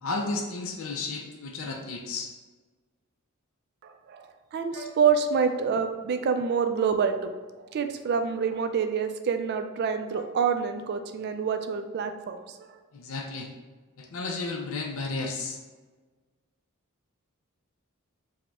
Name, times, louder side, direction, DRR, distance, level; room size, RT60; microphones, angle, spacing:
voice 1, 0.0-2.3 4.7-4.9 10.1-10.2 12.9-13.5 14.0-15.6, left 3 dB, 60° left, 1 dB, 0.4 m, -33 dB
voice 2, 3.8-7.3 7.7-12.8, right 6 dB, 50° right, 7 dB, 0.3 m, -27 dB
4.9 x 2.1 x 3.5 m, 1.3 s
head